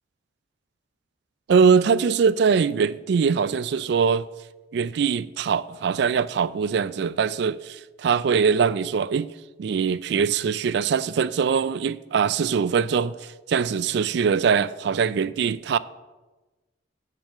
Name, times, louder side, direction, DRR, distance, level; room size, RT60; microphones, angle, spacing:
voice 1, 1.5-4.3 4.7-9.3 9.6-13.1 13.5-15.8, right 6 dB, 60° right, 0.3 m, -22 dB
6.8 x 6.4 x 7.4 m
head